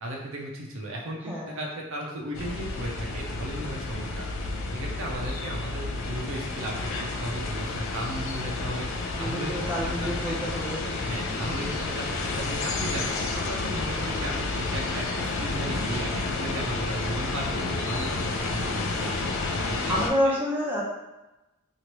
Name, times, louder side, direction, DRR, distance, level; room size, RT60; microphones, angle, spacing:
voice 1, 0.0-8.9 9.2-10.4 11.0-19.2 19.5-20.0 20.2-20.4, right 1 dB, 65° right, 0 dB, 0.6 m, -36 dB
sound 1, 2.3-20.1, left 3 dB, 70° left, 0.4 m, -30 dB
voice 2, 9.1-10.8 11.4-11.7 19.9-20.8, left 1 dB, 10° right, -5 dB, 0.5 m, -28 dB
3.0 x 2.4 x 3.0 m, 1.0 s
head